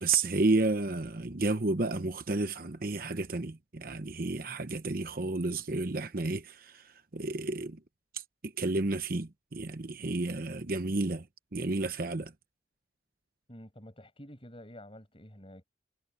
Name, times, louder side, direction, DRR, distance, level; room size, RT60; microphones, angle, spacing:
voice 1, 0.0-7.8 8.1-11.3 11.5-12.3, right 3 dB, 50° right, 0.9 m, -31 dB
voice 2, 13.5-15.6, equal, 30° left, 6.7 m, -49 dB
head